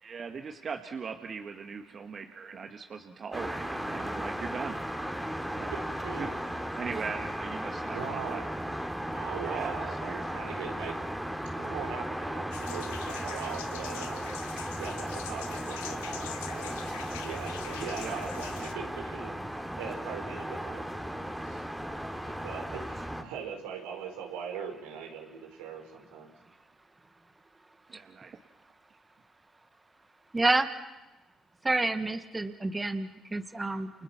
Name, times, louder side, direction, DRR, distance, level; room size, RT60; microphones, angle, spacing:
voice 1, 0.0-4.8 5.6-5.7 6.2-8.4 9.4-9.8 10.0-10.2 18.0-18.2 27.9-28.4, right 5 dB, 50° right, 5 dB, 2.1 m, -40 dB
sound 1, 3.3-23.2, equal, 5° right, 3.6 m, -36 dB
voice 2, 5.7-6.4 7.9-8.5 9.1-11.0 11.5-16.7 17.2-21.6 22.2-26.3, right 7 dB, 85° right, 2 dB, 5.3 m, -41 dB
sound 2, 12.5-18.7, left 12 dB, 90° left, 1.2 m, -44 dB
voice 3, 30.3-30.7 31.6-33.9, right 2 dB, 20° right, 8 dB, 2.0 m, -28 dB
30.0 x 29.0 x 6.0 m, 1.1 s
hypercardioid pair, 55°, 0 cm